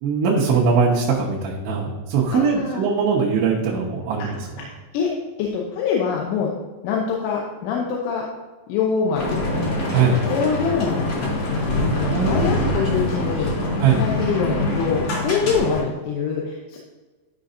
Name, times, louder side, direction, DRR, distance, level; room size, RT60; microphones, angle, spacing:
voice 1, 0.0-4.4 9.9-10.2 12.1-12.4 13.8-14.0, right 5 dB, 75° right, -6 dB, 2.7 m, -21 dB
voice 2, 2.3-2.8 4.9-5.1 5.4-6.5 6.8-8.3 8.7-9.4 9.9-11.7 11.9-13.5 14.0-16.8, left 6 dB, 90° left, -2 dB, 3.4 m, -24 dB
sound 1, 9.1-15.8, left 1 dB, 45° left, 2.6 m, -24 dB
12.5 x 5.2 x 2.7 m, 1.3 s
omnidirectional pair, 5.5 m